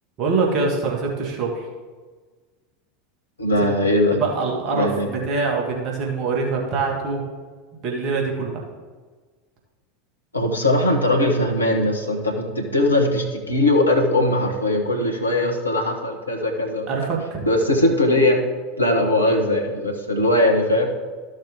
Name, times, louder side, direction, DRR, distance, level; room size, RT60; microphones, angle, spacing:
voice 1, 0.2-1.7 4.2-7.2 7.8-8.6 16.9-17.5, right 4 dB, 40° right, 0 dB, 1.9 m, -24 dB
voice 2, 3.4-4.2 4.7-5.1 10.3-16.9 17.5-18.4 18.8-20.9, left 1 dB, 85° left, 2 dB, 1.3 m, -20 dB
13.0 x 6.4 x 3.7 m, 1.4 s
figure-of-eight pair, 80°, 0 cm